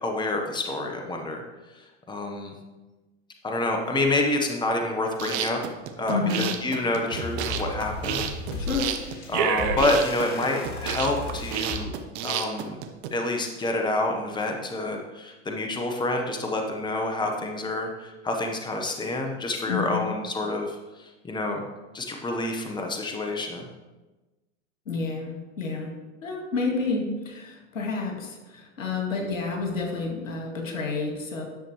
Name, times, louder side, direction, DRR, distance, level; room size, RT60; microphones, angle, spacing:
voice 1, 0.0-1.4 1.7-2.6 3.4-5.6 6.0-8.3 9.3-11.9 12.2-12.8 13.1-21.6 21.9-23.6, left 2 dB, 10° left, 3 dB, 1.1 m, -28 dB
sound 1, 5.0-13.1, right 8 dB, 55° right, 1.0 m, -30 dB
voice 2, 6.1-6.5 8.6-8.9 19.7-20.1 24.9-25.9 26.2-31.4, left 4 dB, 90° left, 2 dB, 2.0 m, -29 dB
sound 2, 6.8-11.8, left 3 dB, 45° left, 2.1 m, -36 dB
10.0 x 6.9 x 3.2 m, 1.1 s
hypercardioid pair, 105°, 39 cm